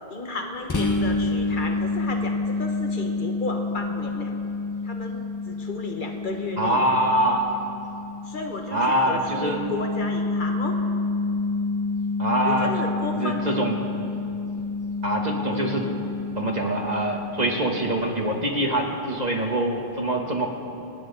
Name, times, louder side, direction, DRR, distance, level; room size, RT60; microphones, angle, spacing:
voice 1, 0.0-4.3 4.8-6.8 8.3-10.8 12.4-13.7 15.5-15.9, left 2 dB, 55° left, 3 dB, 1.4 m, -33 dB
sound 1, 0.7-18.2, left 3 dB, 20° left, 0.6 m, -29 dB
voice 2, 6.6-7.5 8.7-9.6 12.2-12.7 13.1-13.7 15.0-15.8 16.4-20.5, right 1 dB, 45° right, 1 dB, 1.3 m, -24 dB
27.0 x 9.3 x 3.9 m, 2.8 s
omnidirectional pair, 1.0 m